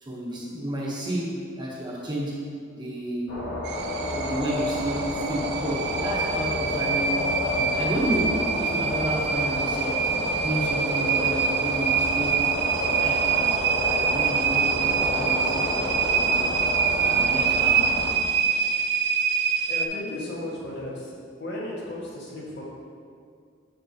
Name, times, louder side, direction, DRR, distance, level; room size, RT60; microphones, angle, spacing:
voice 1, 0.0-2.4 2.7-3.3 3.8-10.1 10.4-13.6 13.8-15.8 16.1-16.5 17.0-17.9, right 1 dB, 25° right, -4 dB, 1.0 m, -31 dB
sound 1, 3.3-18.1, left 1 dB, 85° left, 1.7 m, -30 dB
sound 2, 3.6-19.9, right 7 dB, 60° right, 0.4 m, -25 dB
voice 2, 19.7-21.1 21.4-22.6, left 1 dB, 65° left, -5 dB, 1.6 m, -34 dB
7.7 x 6.0 x 2.9 m, 2.2 s
head